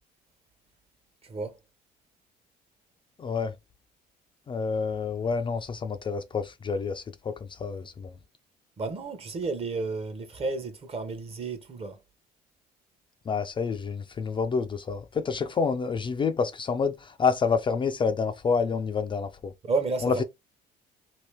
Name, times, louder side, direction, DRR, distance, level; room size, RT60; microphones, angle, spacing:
voice 1, 1.2-1.5 8.8-12.0 19.6-20.2, right 3 dB, 35° right, 0.8 m, -31 dB
voice 2, 3.2-3.5 4.5-8.1 13.3-19.5 20.0-20.2, left 5 dB, 30° left, 0.4 m, -28 dB
2.8 x 2.7 x 3.3 m
cardioid pair, 110°, 17 cm